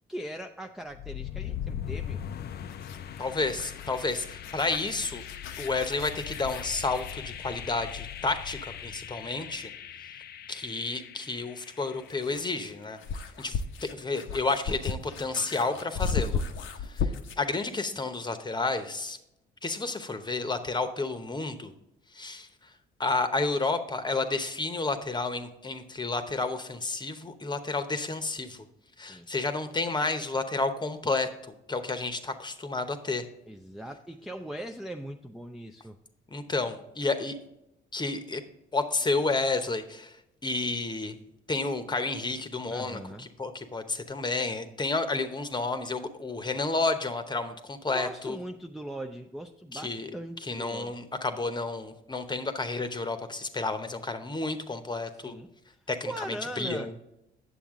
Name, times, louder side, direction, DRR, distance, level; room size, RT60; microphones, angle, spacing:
voice 1, 0.1-2.2 29.0-29.3 33.5-36.0 42.7-43.3 47.9-51.0 55.2-55.5 56.1-56.9, right 1 dB, ahead, 3 dB, 0.4 m, -40 dB
sound 1, 0.9-12.8, left 9 dB, 55° left, 0.5 m, -40 dB
sound 2, 2.7-7.2 9.6-9.7 11.7-17.5, left 5 dB, 80° left, 0.8 m, -35 dB
voice 2, 3.2-5.2 5.6-9.7 10.5-13.0 13.4-16.4 16.8-19.2 19.6-21.7 22.1-22.5 23.0-28.6 29.0-33.2 36.3-37.3 37.9-38.4 38.7-40.2 40.4-41.2 41.5-48.4 49.7-50.1 50.4-55.4 55.9-57.0, left 3 dB, 20° left, 9 dB, 0.9 m, -31 dB
8.8 x 7.0 x 3.6 m, 0.84 s
cardioid pair, 90°, 20 cm